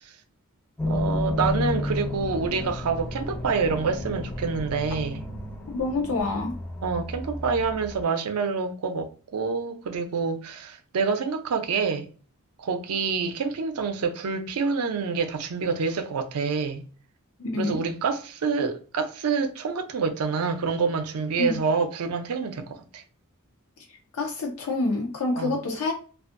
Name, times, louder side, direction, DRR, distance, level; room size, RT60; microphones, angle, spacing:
sound 1, 0.8-8.0, left 1 dB, 10° left, 0.4 m, -32 dB
voice 1, 0.9-5.2 6.8-12.1 12.6-16.8 17.6-23.0 25.4-25.5, right 5 dB, 80° right, 0.5 m, -27 dB
voice 2, 5.7-6.6 17.4-17.8 21.4-21.6 24.1-25.9, left 3 dB, 75° left, 0.5 m, -27 dB
2.5 x 2.3 x 2.4 m
head